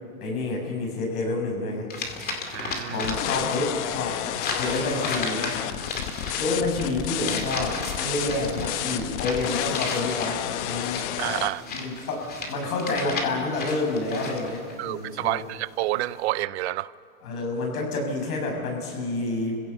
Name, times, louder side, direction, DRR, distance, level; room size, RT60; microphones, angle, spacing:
voice 1, 0.2-1.9 2.9-4.2 4.5-5.5 6.4-11.1 11.7-15.4 17.2-19.6, left 2 dB, 80° left, 1 dB, 6.6 m, -28 dB
sound 1, 1.9-3.6 3.9-14.7, left 4 dB, 20° left, 2.4 m, -34 dB
voice 2, 2.5-3.0 11.2-11.6 14.8-16.9, right 16 dB, 50° right, 18 dB, 0.5 m, -28 dB
sound 2, 3.0-11.5, left 12 dB, 50° left, 1.0 m, -31 dB
30.0 x 16.0 x 7.0 m, 2.4 s
supercardioid pair, 150°, 44 cm